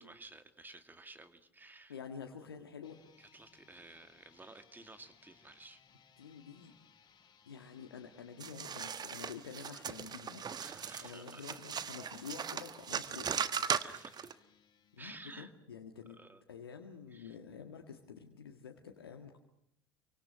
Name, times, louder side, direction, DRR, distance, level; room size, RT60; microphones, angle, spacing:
voice 1, 0.0-2.0 3.2-5.8 10.6-11.6 13.7-14.3 15.0-15.5 16.1-16.4 17.1-17.4, right 2 dB, 15° right, 8 dB, 2.3 m, -54 dB
voice 2, 1.9-3.0 6.2-6.7 7.5-13.3 14.9-16.2 16.5-19.4, left 6 dB, 80° left, 4 dB, 1.7 m, -49 dB
sound 1, 2.7-15.5, left 7 dB, 35° left, 6.6 m, -65 dB
sound 2, 8.4-14.3, right 7 dB, 35° right, 1.4 m, -38 dB
28.5 x 24.5 x 6.4 m, 0.76 s
figure-of-eight pair, 65°, 12 cm